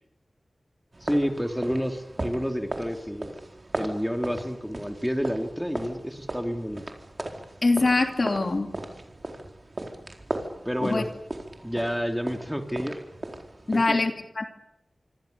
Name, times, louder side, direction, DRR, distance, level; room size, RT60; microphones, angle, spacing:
sound 1, 0.9-13.9, right 2 dB, 40° right, 4.3 m, -37 dB
voice 1, 1.0-3.3 3.7-6.8 10.6-11.1 11.6-13.0 13.9-14.0, equal, ahead, 5 dB, 3.1 m, -29 dB
voice 2, 7.6-8.7 10.8-11.0 13.7-14.1 14.4-14.5, left 3 dB, 55° left, 5 dB, 3.1 m, -23 dB
26.5 x 25.5 x 7.0 m, 0.78 s
wide cardioid pair, 75°, 0 cm